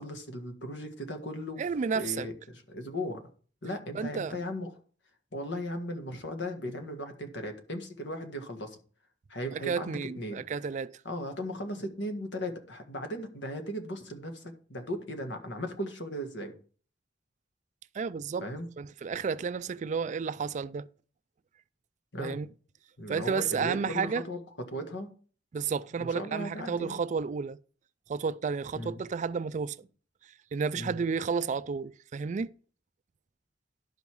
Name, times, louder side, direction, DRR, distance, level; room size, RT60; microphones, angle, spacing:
voice 1, 0.0-1.6 1.9-3.2 3.6-4.7 5.3-8.8 9.3-10.4 11.0-16.5 18.4-18.7 22.1-22.4 23.0-25.1 26.0-27.0 28.7-28.9 30.7-31.0, equal, 70° left, 1.7 m, -37 dB
voice 2, 1.6-2.3 3.9-4.3 9.5-10.9 17.9-18.5 18.8-20.9 22.2-22.5 23.1-24.2 25.5-27.6 28.1-29.8 30.5-32.5, right 5 dB, 40° right, 0.3 m, -31 dB
11.5 x 5.4 x 4.7 m
head